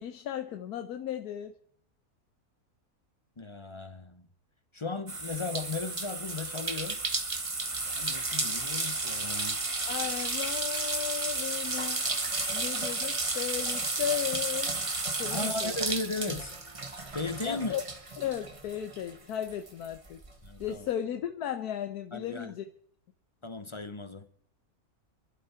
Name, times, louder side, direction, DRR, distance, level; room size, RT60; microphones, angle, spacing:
voice 1, 0.0-1.5 9.9-12.1 12.5-14.8 15.2-15.7 17.5-17.8 18.2-20.2 20.6-22.6, left 10 dB, 85° left, 1.3 m, -35 dB
voice 2, 3.4-4.3 4.7-7.0 7.9-9.6 15.3-16.6 17.1-17.8 20.4-20.9 22.1-22.5 23.4-24.3, left 3 dB, 30° left, 0.5 m, -36 dB
sound 1, 5.1-19.1 19.4-20.7, right 3 dB, 25° right, 1.2 m, -33 dB
26.5 x 12.0 x 4.4 m
omnidirectional pair, 1.6 m